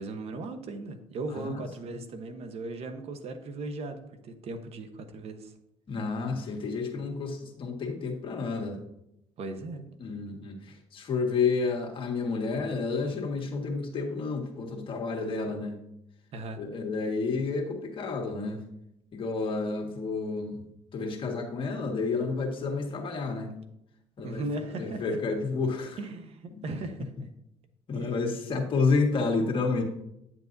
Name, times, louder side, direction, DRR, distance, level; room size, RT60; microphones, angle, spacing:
voice 1, 0.0-5.5 9.4-9.9 16.3-16.6 24.2-25.2 26.0-27.3 27.9-28.2, right 2 dB, 60° right, 8 dB, 1.0 m, -37 dB
voice 2, 5.9-8.8 10.0-15.8 16.6-18.6 19.1-20.6 20.9-23.5 24.2-24.4 24.7-26.0 26.5-26.6 27.9-29.8, left 4 dB, 45° left, 2 dB, 1.7 m, -30 dB
9.7 x 7.4 x 2.7 m, 0.82 s
supercardioid pair, 85°, 12 cm